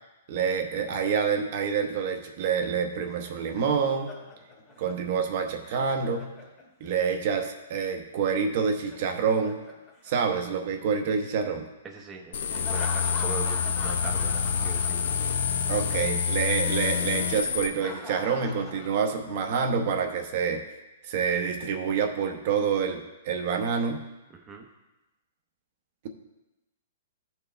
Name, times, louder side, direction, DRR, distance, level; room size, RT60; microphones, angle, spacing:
voice 1, 0.3-4.1 4.8-6.3 6.8-9.6 10.0-11.7 15.7-20.6 21.0-24.0, right 6 dB, 50° right, 4 dB, 0.8 m, -27 dB
Laughter, 2.9-7.0 8.7-10.8 12.5-15.6 15.8-16.0 17.5-19.6, left 3 dB, 20° left, 1.5 m, -44 dB
voice 2, 11.8-15.0 24.3-24.7, right 4 dB, 15° right, 0 dB, 0.8 m, -40 dB
sound 1, 12.3-17.7, left 7 dB, 70° left, 0.6 m, -27 dB
13.5 x 4.5 x 3.3 m, 1.0 s
hypercardioid pair, 155°, 0 cm